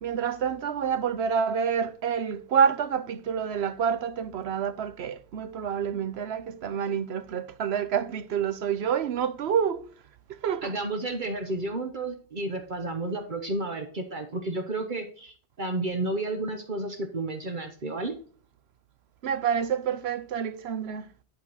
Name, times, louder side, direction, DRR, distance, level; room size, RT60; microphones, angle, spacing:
voice 1, 0.0-9.9 10.3-10.7 19.2-21.1, right 7 dB, 90° right, 1.0 m, -28 dB
voice 2, 10.6-18.1, right 2 dB, 55° right, 1.2 m, -32 dB
10.5 x 5.3 x 3.9 m
omnidirectional pair, 1.0 m